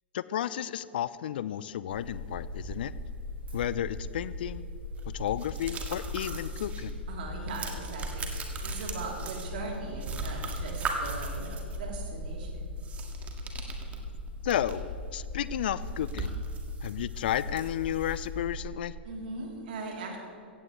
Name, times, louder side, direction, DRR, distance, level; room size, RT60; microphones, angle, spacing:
voice 1, 0.1-2.9 3.5-4.7 5.1-7.0 14.4-16.4 16.8-18.9, left 11 dB, 60° left, 17 dB, 0.5 m, -32 dB
sound 1, 1.9-18.6, left 1 dB, 80° right, 3.9 m, -39 dB
sound 2, 5.0-6.9 7.2-9.8 10.0-11.8 12.8-14.9 15.3-15.4 15.7-18.3, right 3 dB, 20° right, 1.8 m, -39 dB
voice 2, 7.1-12.8 19.0-20.2, right 3 dB, 60° right, -1 dB, 3.4 m, -40 dB
16.0 x 16.0 x 3.2 m, 2.5 s
figure-of-eight pair, 105°, 6 cm